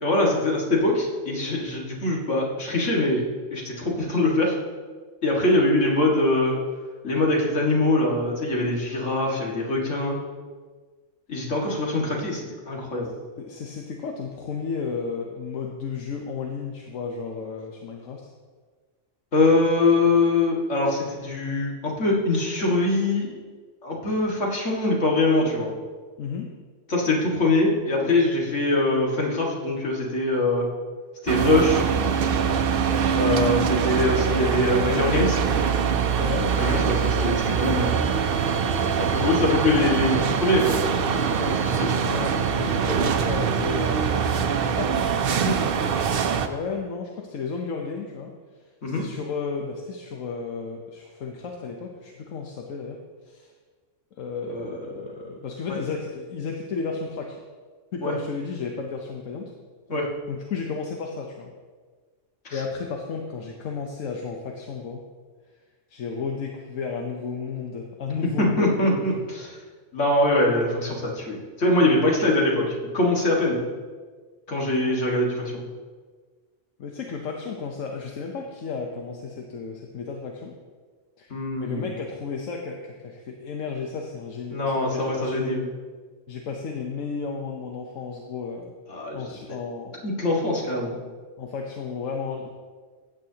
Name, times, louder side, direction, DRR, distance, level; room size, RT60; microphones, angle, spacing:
voice 1, 0.0-3.3 3.5-4.6 5.2-6.6 7.0-10.2 11.3-13.1 19.3-23.3 23.8-25.7 26.9-30.7 31.2-31.8 33.1-35.4 36.6-37.9 39.0-40.7 41.6-41.9 48.8-49.0 54.5-55.3 55.7-55.8 58.0-58.1 59.9-60.1 62.5-62.6 68.4-69.6 69.9-73.6 74.5-75.5 81.3-81.9 84.5-85.7 88.9-89.4 90.0-91.0, left 2 dB, 70° left, -2 dB, 2.2 m, -23 dB
voice 2, 13.4-18.3 26.2-26.5 36.2-36.5 41.4-44.3 44.6-46.0 46.4-48.3 48.9-53.0 53.3-53.5 54.2-57.4 57.9-59.5 60.3-61.5 62.5-65.0 65.9-69.1 71.8-72.1 76.8-80.5 81.2-85.6 86.3-88.7 89.1-89.9 91.4-92.5, left 5 dB, 85° left, 2 dB, 1.2 m, -33 dB
sound 1, 31.3-46.5, right 6 dB, 55° right, 0.7 m, -23 dB
15.0 x 8.9 x 2.8 m, 1.5 s
omnidirectional pair, 1.3 m